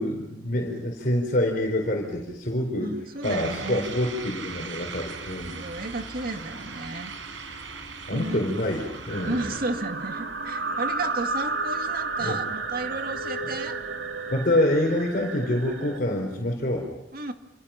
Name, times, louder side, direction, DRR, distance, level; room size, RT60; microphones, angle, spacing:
voice 1, 0.0-2.9 3.2-5.7 8.1-9.4 12.2-12.4 14.3-16.9, left 1 dB, 45° left, 1 dB, 4.3 m, -26 dB
voice 2, 2.8-3.9 5.5-7.1 8.1-8.5 9.3-13.8 17.1-17.3, right 2 dB, 50° right, 6 dB, 2.2 m, -33 dB
sound 1, 3.2-9.6, right 4 dB, 90° right, 4.3 m, -39 dB
sound 2, 9.1-16.0, right 3 dB, 75° right, 2.3 m, -32 dB
29.5 x 27.5 x 5.8 m, 0.84 s
head